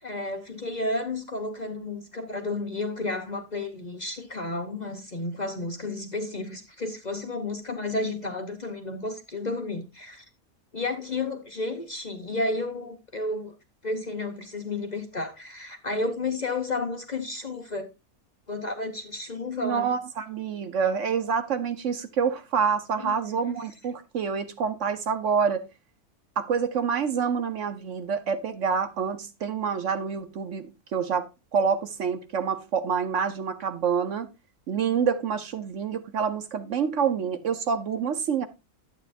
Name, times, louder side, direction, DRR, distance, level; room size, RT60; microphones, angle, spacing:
voice 1, 0.0-10.2 10.7-13.5 13.8-17.9 18.5-19.9 23.0-23.4, left 2 dB, 35° left, 0.8 m, -32 dB
voice 2, 19.6-25.6 26.4-31.3 31.5-34.3 34.7-38.5, right 6 dB, 60° right, 1.1 m, -27 dB
11.5 x 8.1 x 2.5 m
omnidirectional pair, 1.5 m